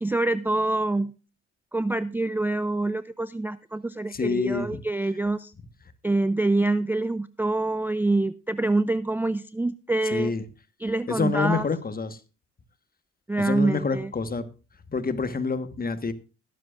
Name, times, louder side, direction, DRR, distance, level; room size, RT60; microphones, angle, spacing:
voice 1, 0.0-1.1 1.7-5.5 6.0-10.3 10.8-11.7 13.3-14.1, right 2 dB, 5° right, 14 dB, 0.4 m, -26 dB
voice 2, 4.1-4.8 10.1-10.4 11.1-12.2 13.4-14.5 14.9-16.1, left 4 dB, 30° left, 11 dB, 1.4 m, -27 dB
22.0 x 7.6 x 2.5 m, 0.33 s
cardioid pair, 90°, 30 cm